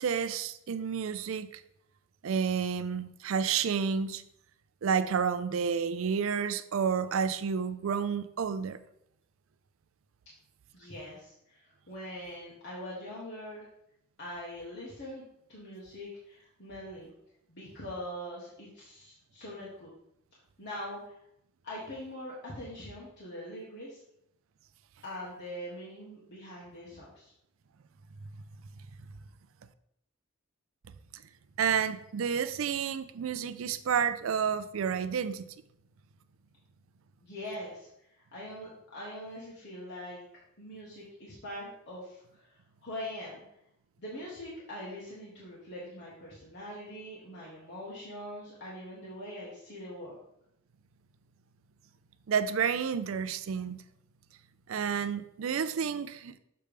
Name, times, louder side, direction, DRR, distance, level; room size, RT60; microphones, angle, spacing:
voice 1, 0.0-1.6 2.2-4.2 4.8-8.8 31.6-35.5 52.3-53.8 54.7-56.4, right 7 dB, 75° right, 12 dB, 0.4 m, -30 dB
voice 2, 10.7-13.7 14.2-15.2 15.5-17.1 17.5-19.9 20.6-21.2 21.6-24.0 25.0-27.3 37.2-40.2 40.6-43.4 44.0-50.2, left 1 dB, 55° left, -6 dB, 1.4 m, -43 dB
6.8 x 3.3 x 5.1 m, 0.77 s
head